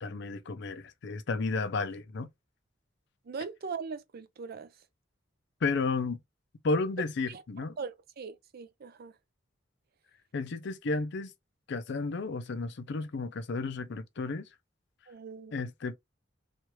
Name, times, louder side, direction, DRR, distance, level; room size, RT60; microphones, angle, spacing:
voice 1, 0.0-2.3 5.6-6.2 6.6-7.8 10.3-11.3 11.7-14.5 15.5-16.0, left 3 dB, 65° left, 0.5 m, -32 dB
voice 2, 3.3-4.7 7.3-9.1 15.1-15.5, right 5 dB, 55° right, 0.4 m, -41 dB
3.1 x 2.4 x 2.9 m
head